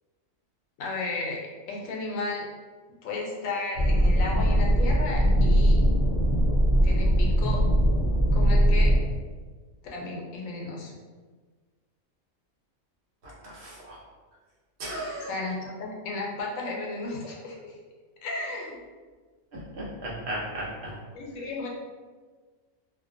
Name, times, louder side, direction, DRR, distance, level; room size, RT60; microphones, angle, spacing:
voice 1, 0.8-1.4 1.7-2.5 3.0-5.8 6.8-7.6 8.3-8.9 9.9-10.9 15.3-17.7 18.2-18.8 21.1-21.7, left 3 dB, 85° left, -2 dB, 1.0 m, -34 dB
sound 1, 3.7-9.0, equal, 55° left, 0.5 m, -21 dB
voice 2, 13.2-14.0 14.8-15.3 19.5-20.9, right 1 dB, 60° right, -5 dB, 0.8 m, -36 dB
2.4 x 2.2 x 2.4 m, 1.4 s
omnidirectional pair, 1.4 m